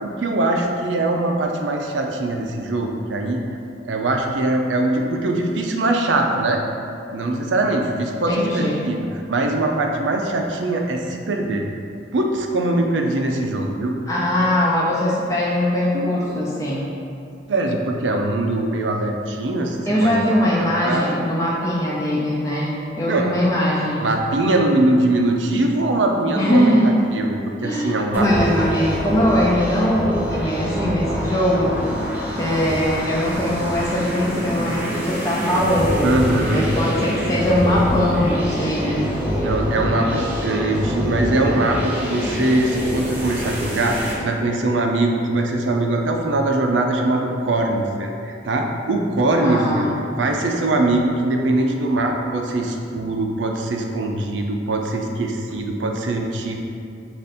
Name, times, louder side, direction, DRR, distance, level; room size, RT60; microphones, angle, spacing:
voice 1, 0.0-3.4 3.8-6.6 7.1-11.6 12.1-14.0 15.9-16.6 17.5-20.1 20.6-21.1 23.1-23.3 24.0-28.5 36.0-36.7 39.4-49.9 50.2-56.6, right 2 dB, 90° right, 2 dB, 0.5 m, -22 dB
voice 2, 8.3-8.8 14.1-16.9 19.9-24.1 26.4-27.0 27.6-31.8 32.4-36.1 36.5-39.1 49.4-50.0, equal, 15° left, -6 dB, 0.5 m, -21 dB
sound 1, 28.1-44.1, equal, 10° right, 0.8 m, -25 dB
5.0 x 2.5 x 4.2 m, 2.5 s
head